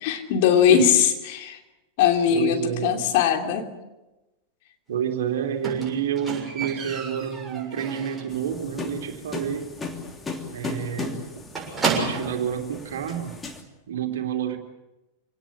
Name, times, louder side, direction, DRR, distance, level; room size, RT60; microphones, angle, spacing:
voice 1, 0.0-1.6 2.0-3.7, left 8 dB, 50° left, 4 dB, 2.9 m, -20 dB
voice 2, 2.3-3.0 4.9-9.7 10.5-11.2 11.9-13.4 13.9-14.6, right 8 dB, 60° right, 5 dB, 3.0 m, -29 dB
Squeak, 5.6-8.4 8.7-9.1 9.4-9.5 9.9-10.0 10.2-10.4 10.6-12.5 13.3-13.4, right 4 dB, 15° right, 6.7 m, -31 dB
sound 1, 8.3-13.6, left 3 dB, 15° left, 2.9 m, -36 dB
26.0 x 18.5 x 8.7 m, 1.0 s
figure-of-eight pair, 90°, 0 cm